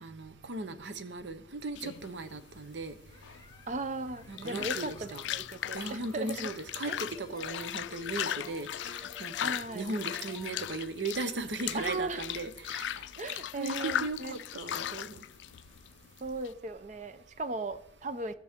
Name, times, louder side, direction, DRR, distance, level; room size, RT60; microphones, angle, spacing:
voice 1, 0.0-2.9 4.3-5.2 5.7-13.0 13.6-15.2, right 3 dB, 80° right, 10 dB, 0.8 m, -37 dB
sound 1, 1.8-16.5, left 11 dB, 80° left, 0.3 m, -38 dB
sound 2, 3.1-10.8, left 3 dB, 20° left, 0.9 m, -53 dB
voice 2, 3.7-6.5 6.9-7.0 9.4-9.9 11.7-12.2 13.2-14.4 16.2-18.3, right 2 dB, 40° right, 11 dB, 0.5 m, -37 dB
17.0 x 6.2 x 3.6 m, 0.81 s
head